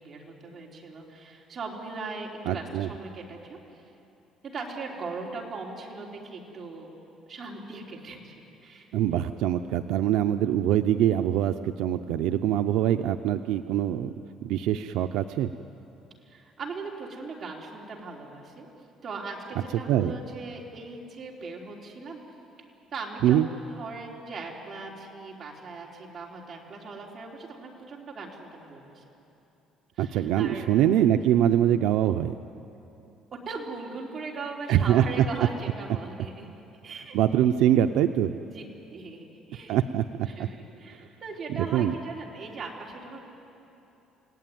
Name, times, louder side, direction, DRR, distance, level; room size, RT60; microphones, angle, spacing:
voice 1, 0.0-3.6 4.4-6.9 7.3-8.3 8.6-8.9 16.2-18.7 19.0-22.2 22.9-29.0 30.0-30.8 33.3-36.5 36.8-37.2 38.3-38.6 38.9-39.8 40.2-43.3, right 3 dB, 30° right, -2 dB, 3.7 m, -39 dB
voice 2, 2.5-2.9 8.9-14.1 14.4-15.5 19.9-20.2 23.2-23.5 30.0-32.3 34.7-35.2 37.1-38.3 39.7-40.3 41.6-41.9, right 11 dB, 75° right, 7 dB, 0.6 m, -23 dB
29.5 x 18.0 x 9.4 m, 2.9 s
cardioid pair, 170°, 0 cm